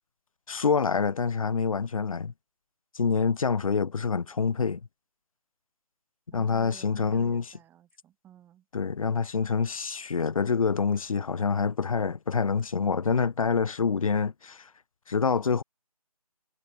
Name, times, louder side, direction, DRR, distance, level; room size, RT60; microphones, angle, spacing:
voice 1, 0.5-2.3 2.9-4.8 6.3-7.4 8.7-14.7 15.1-15.6, left 5 dB, 60° left, 1.0 m, -26 dB
voice 2, 6.3-8.7, right 11 dB, 10° right, 4.3 m, -53 dB
figure-of-eight pair, 155°, 20 cm